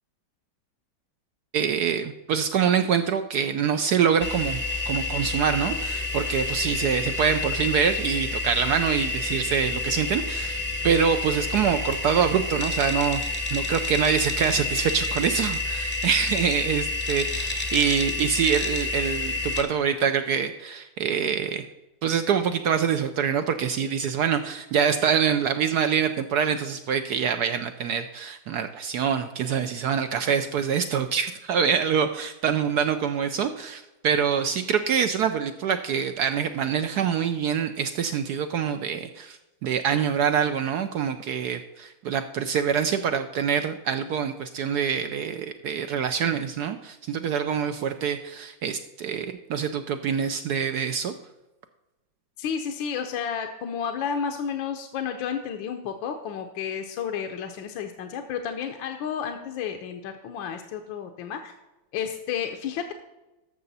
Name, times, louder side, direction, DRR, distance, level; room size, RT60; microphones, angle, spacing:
voice 1, 1.5-10.6 10.8-13.2 13.5-21.7 22.0-51.1, right 7 dB, 75° right, 8 dB, 0.9 m, -25 dB
sound 1, 4.2-19.6, left 3 dB, 15° left, 0.4 m, -29 dB
voice 2, 52.4-61.5 61.9-62.9, left 7 dB, 75° left, 5 dB, 1.5 m, -31 dB
12.5 x 6.7 x 4.1 m, 1.0 s
omnidirectional pair, 2.2 m